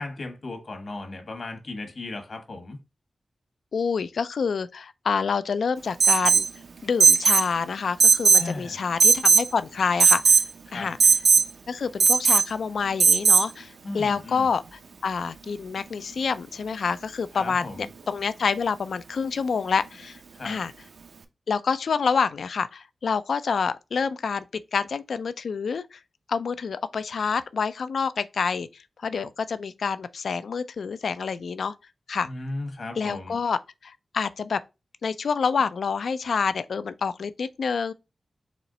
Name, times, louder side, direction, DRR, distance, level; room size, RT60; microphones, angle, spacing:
voice 1, 0.0-2.8 8.3-8.8 10.7-10.9 13.8-14.5 17.3-17.9 20.3-20.6 32.2-33.4, left 2 dB, 55° left, 1.2 m, -36 dB
voice 2, 3.7-6.5 6.8-10.4 10.7-11.0 11.7-20.7 21.5-26.0 26.3-28.7 29.0-31.7 32.1-32.3 33.0-34.6 35.0-37.9, left 5 dB, 80° left, 0.3 m, -27 dB
Alarm, 6.0-6.5 7.0-7.5 8.0-8.5 9.0-9.5 10.0-10.5 11.0-11.5 12.0-12.5 13.0-13.5, right 5 dB, 75° right, 0.6 m, -17 dB
4.3 x 3.1 x 3.8 m
wide cardioid pair, 115°, 0 cm